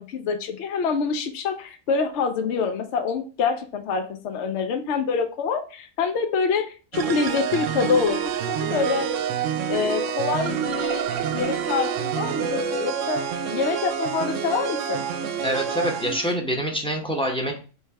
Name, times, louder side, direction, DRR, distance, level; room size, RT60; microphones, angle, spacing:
voice 1, 0.0-8.2 8.5-9.1 9.7-13.2 13.5-15.0, left 5 dB, 65° left, 6 dB, 0.9 m, -26 dB
sound 1, 6.9-16.4, right 7 dB, 75° right, 0.9 m, -27 dB
voice 2, 15.4-17.6, equal, 5° left, 0 dB, 0.7 m, -26 dB
3.3 x 3.2 x 4.5 m, 0.36 s
omnidirectional pair, 1.3 m